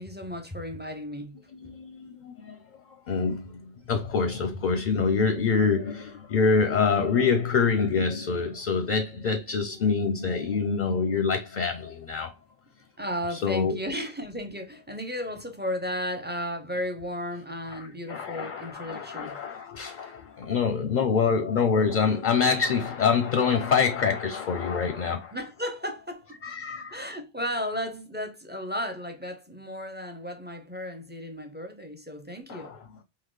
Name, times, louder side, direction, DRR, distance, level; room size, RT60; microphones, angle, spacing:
voice 1, 0.0-1.4 1.6-1.7 13.0-19.4 25.3-26.3 26.9-32.7, equal, 10° right, 0.5 m, -34 dB
voice 2, 1.5-2.6 3.1-12.3 13.3-13.8 17.7-25.4 26.4-27.0 32.5-32.8, left 5 dB, 55° left, 0.6 m, -26 dB
3.9 x 2.8 x 3.1 m
omnidirectional pair, 1.1 m